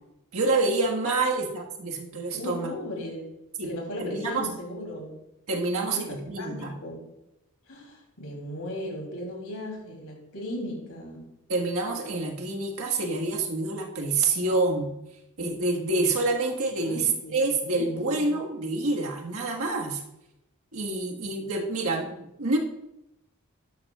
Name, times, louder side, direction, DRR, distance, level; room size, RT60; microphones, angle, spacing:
voice 1, 0.3-2.7 3.6-3.7 4.0-4.5 5.5-6.7 11.5-14.9 15.4-20.0 20.7-22.6, right 3 dB, 70° right, 0 dB, 1.7 m, -27 dB
voice 2, 2.3-3.3 3.6-5.1 5.6-7.1 7.7-11.3 16.8-18.3, left 1 dB, 80° left, -1 dB, 3.3 m, -37 dB
13.0 x 10.5 x 2.4 m, 0.88 s
head